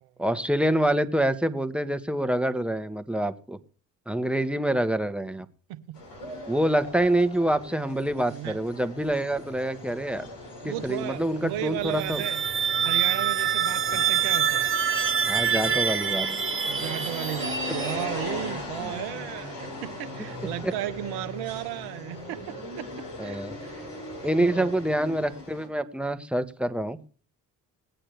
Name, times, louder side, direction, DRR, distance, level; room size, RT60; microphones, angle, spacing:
voice 1, 0.2-3.6 4.1-5.4 6.5-10.3 10.6-12.2 15.2-16.3 17.7-17.8 20.6-20.7 23.2-23.6 24.2-27.0, right 1 dB, 5° right, 1.4 m, -26 dB
sound 1, 5.9-25.7, left 1 dB, 65° left, 6.0 m, -38 dB
voice 2, 10.6-12.4 12.8-14.7 16.7-22.9 23.2-23.9 24.3-24.7, right 14 dB, 75° right, 0.9 m, -35 dB
sound 2, 11.8-18.4, right 8 dB, 30° right, 1.3 m, -26 dB
19.0 x 8.9 x 3.4 m
hypercardioid pair, 45°, 38 cm